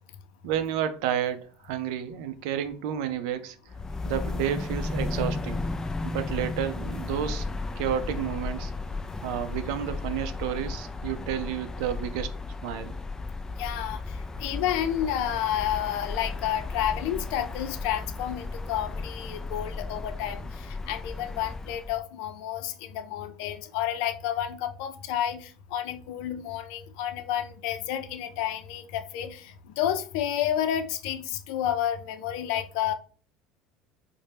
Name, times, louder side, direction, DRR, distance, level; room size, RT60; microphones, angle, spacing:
voice 1, 0.4-3.6 4.0-5.6 6.0-7.5 7.8-8.7 9.2-12.3 12.6-13.0, right 10 dB, 75° right, 0.5 m, -31 dB
sound 1, 3.7-22.0, left 3 dB, 15° left, 0.4 m, -34 dB
voice 2, 13.6-32.9, left 11 dB, 70° left, 0.5 m, -30 dB
4.2 x 2.1 x 3.3 m
hypercardioid pair, 80°, 3 cm